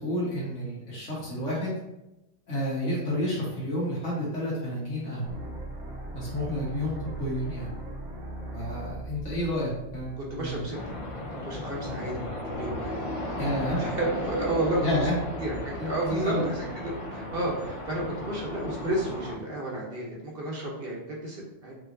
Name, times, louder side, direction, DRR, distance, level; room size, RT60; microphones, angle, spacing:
voice 1, 0.0-1.8 2.5-5.4 6.1-7.7 8.5-10.6 13.4-13.8 14.8-15.1 15.8-16.4, left 1 dB, 70° left, -6 dB, 1.9 m, -30 dB
sound 1, 5.2-11.2, right 1 dB, 85° right, 1.3 m, -39 dB
voice 2, 10.2-10.9 11.4-12.9 13.8-15.1 15.4-21.7, right 1 dB, 55° right, -2 dB, 1.0 m, -32 dB
sound 2, 10.7-19.4, left 1 dB, 40° left, 0.5 m, -35 dB
4.8 x 3.1 x 2.6 m, 0.93 s
omnidirectional pair, 1.3 m